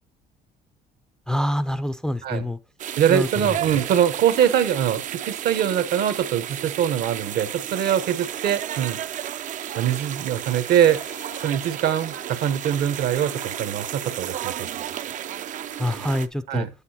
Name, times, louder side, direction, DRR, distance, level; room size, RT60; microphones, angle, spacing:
voice 1, 1.3-2.6 3.1-3.6 15.8-16.7, left 1 dB, 5° left, 0.4 m, -26 dB
sound 1, 2.8-16.3, right 10 dB, 50° right, 0.4 m, -33 dB
voice 2, 3.0-9.0 9.8-11.0 11.4-14.7 16.5-16.7, right 9 dB, 65° right, 0.9 m, -23 dB
Bowed string instrument, 10.3-14.8, left 7 dB, 80° left, 2.0 m, -48 dB
9.0 x 8.3 x 2.8 m
cardioid pair, 110°, 17 cm